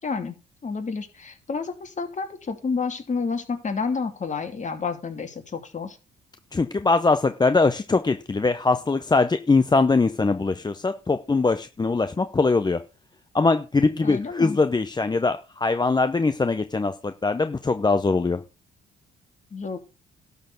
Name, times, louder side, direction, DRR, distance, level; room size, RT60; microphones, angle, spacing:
voice 1, 0.0-0.4 0.6-6.0 14.0-14.6 19.5-19.8, left 4 dB, 35° left, 6 dB, 2.6 m, -30 dB
voice 2, 6.5-12.8 13.3-18.4, left 3 dB, 20° left, 9 dB, 0.9 m, -22 dB
12.0 x 4.5 x 7.9 m, 0.30 s
cardioid pair, 90°, 20 cm